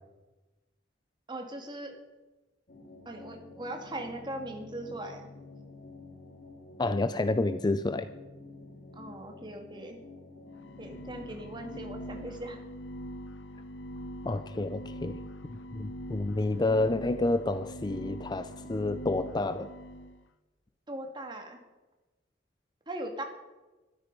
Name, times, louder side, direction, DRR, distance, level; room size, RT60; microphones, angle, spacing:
voice 1, 1.3-2.0 3.1-5.3 8.9-10.0 10.8-12.6 20.9-21.6 22.9-23.2, right 1 dB, 25° right, 3 dB, 2.0 m, -39 dB
sound 1, 2.7-11.8, left 3 dB, 55° left, 2.1 m, -49 dB
voice 2, 6.8-8.1 14.2-15.2 15.5-19.7, left 2 dB, 20° left, 12 dB, 0.4 m, -29 dB
sound 2, 10.6-20.2, equal, 75° left, 0.8 m, -43 dB
14.0 x 12.5 x 5.3 m, 1.1 s
head